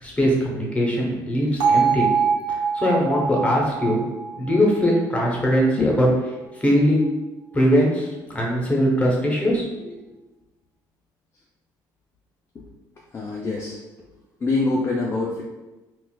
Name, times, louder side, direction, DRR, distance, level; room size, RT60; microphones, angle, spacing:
voice 1, 0.0-2.1 2.5-4.0 4.3-6.1 6.5-7.1 7.5-9.9, equal, 15° left, -2 dB, 0.9 m, -21 dB
Bell, 1.6-5.7, right 6 dB, 55° right, 0.9 m, -24 dB
voice 2, 13.1-13.8 14.4-15.4, left 3 dB, 30° left, -3 dB, 0.5 m, -24 dB
3.9 x 2.4 x 2.3 m, 1.1 s
cardioid pair, 100°, 8 cm